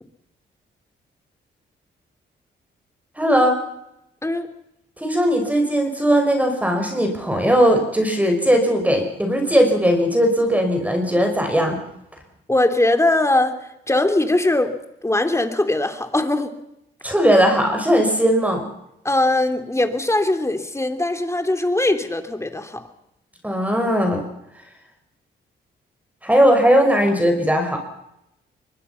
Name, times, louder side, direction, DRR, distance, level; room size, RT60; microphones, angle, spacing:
voice 1, 3.2-3.6 5.0-11.8 17.0-18.7 23.4-24.2 26.2-27.8, equal, 5° right, 4 dB, 5.7 m, -18 dB
voice 2, 12.5-13.6 13.9-14.7 15.0-16.5 19.0-22.8, left 2 dB, 15° left, 7 dB, 3.1 m, -20 dB
23.5 x 21.5 x 5.8 m, 0.83 s
cardioid pair, 80°, 20 cm